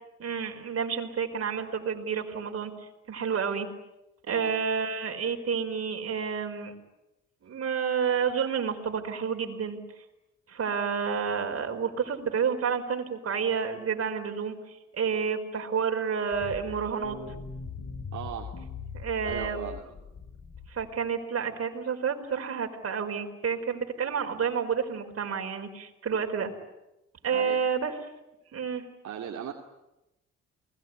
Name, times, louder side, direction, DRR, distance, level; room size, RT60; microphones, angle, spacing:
voice 1, 0.2-2.7 3.1-3.7 4.3-6.7 7.4-9.8 10.5-17.2 18.9-19.6 20.7-26.5 27.2-28.0 28.5-28.8, right 6 dB, 50° right, 4 dB, 5.0 m, -30 dB
sound 1, 16.3-21.0, left 5 dB, 50° left, 4.2 m, -41 dB
voice 2, 18.1-18.5 19.2-19.8 27.3-27.6 29.0-29.5, right 8 dB, 65° right, 0 dB, 3.0 m, -37 dB
29.0 x 21.0 x 9.7 m, 0.92 s
cardioid pair, 90°, 30 cm